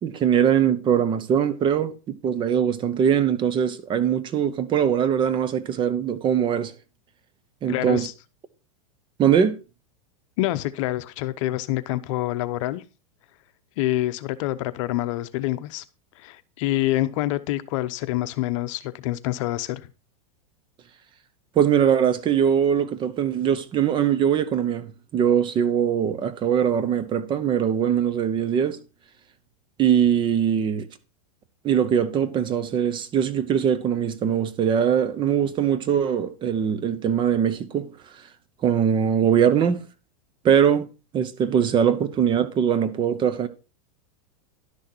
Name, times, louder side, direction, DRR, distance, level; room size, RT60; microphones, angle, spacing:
voice 1, 0.0-6.7 7.6-8.1 9.2-9.6 21.5-28.8 29.8-30.9 31.6-38.2 38.6-39.8 40.4-40.9 41.1-43.5, right 8 dB, 25° right, 0.8 m, -22 dB
voice 2, 7.7-8.1 10.4-12.8 13.8-15.8 16.2-19.9, left 15 dB, 55° left, 0.8 m, -26 dB
11.5 x 6.5 x 4.4 m
supercardioid pair, 140°, 19 cm